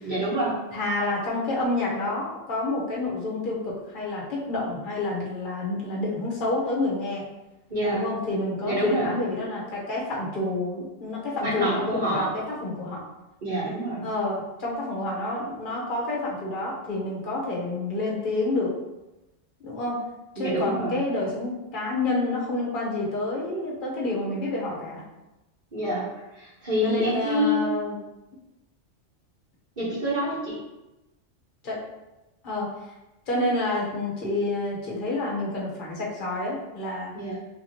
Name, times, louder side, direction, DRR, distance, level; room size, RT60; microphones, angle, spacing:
voice 1, 0.0-0.6 7.7-8.0 8.6-9.1 11.4-12.3 13.4-14.0 20.4-21.0 25.7-26.1 26.3-27.7 29.8-30.6 37.1-37.4, equal, 40° right, -12 dB, 1.1 m, -26 dB
voice 2, 0.7-7.2 7.9-12.3 12.6-13.0 14.0-18.7 19.6-20.0 20.4-25.0 26.8-28.0 31.6-31.8 32.4-32.7 33.3-37.1, left 2 dB, 45° left, -5 dB, 1.0 m, -28 dB
3.5 x 3.1 x 2.8 m, 0.99 s
omnidirectional pair, 1.3 m